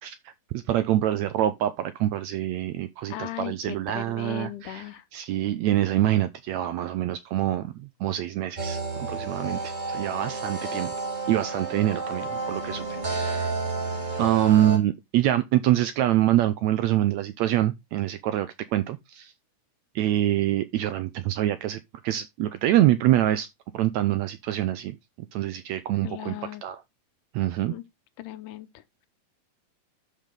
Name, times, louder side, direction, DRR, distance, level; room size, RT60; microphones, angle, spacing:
voice 1, 0.0-4.8 5.1-8.8 9.1-10.9 11.3-13.5 14.2-19.3 19.9-23.5 23.7-26.3 26.6-26.8 27.3-27.7, right 13 dB, 80° right, 1.7 m, -25 dB
voice 2, 3.1-5.0 26.0-26.7 27.7-27.8 28.2-29.1, left 13 dB, 80° left, 2.3 m, -37 dB
sound 1, 8.6-14.8, right 3 dB, 35° right, 0.7 m, -31 dB
12.0 x 5.2 x 3.7 m
omnidirectional pair, 3.8 m